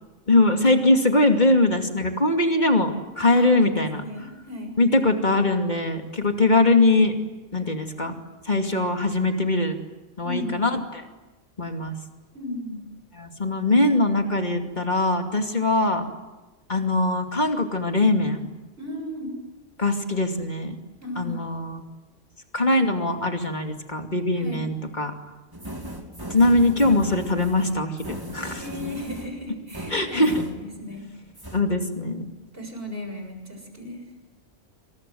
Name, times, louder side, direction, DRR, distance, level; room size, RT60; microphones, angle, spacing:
voice 1, 0.3-4.0 4.8-7.1 7.5-8.1 8.5-9.8 10.2-11.0 11.6-11.9 13.2-16.0 16.7-18.5 19.8-20.8 21.2-21.8 22.5-25.1 26.3-27.9 28.3-28.6 29.9-30.4 31.5-32.3, left 2 dB, 35° left, 4 dB, 2.7 m, -21 dB
voice 2, 3.3-3.7 3.9-4.7 10.2-10.6 12.3-12.8 18.8-19.4 21.0-21.4 24.4-24.7 28.6-31.1 32.5-34.1, left 1 dB, 50° right, 4 dB, 7.2 m, -35 dB
sound 1, 25.5-31.1 31.3-31.6, right 1 dB, 15° right, 2.9 m, -37 dB
27.5 x 26.0 x 7.9 m, 1.1 s
omnidirectional pair, 1.3 m